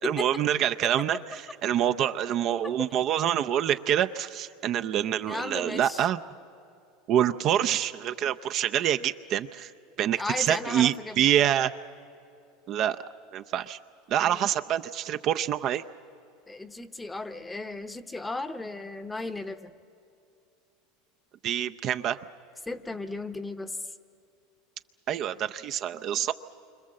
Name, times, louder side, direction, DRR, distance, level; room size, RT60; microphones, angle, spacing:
voice 1, 0.0-6.2 7.1-9.7 10.0-11.7 12.7-13.0 13.3-13.8 14.1-15.8 21.4-22.2 25.1-26.3, right 10 dB, 40° right, 9 dB, 0.6 m, -26 dB
voice 2, 5.3-6.1 10.2-11.3 14.2-14.4 16.5-19.7 22.7-23.8, left 2 dB, 10° left, 11 dB, 0.9 m, -35 dB
28.0 x 25.0 x 7.6 m, 2.6 s
supercardioid pair, 140°, 0 cm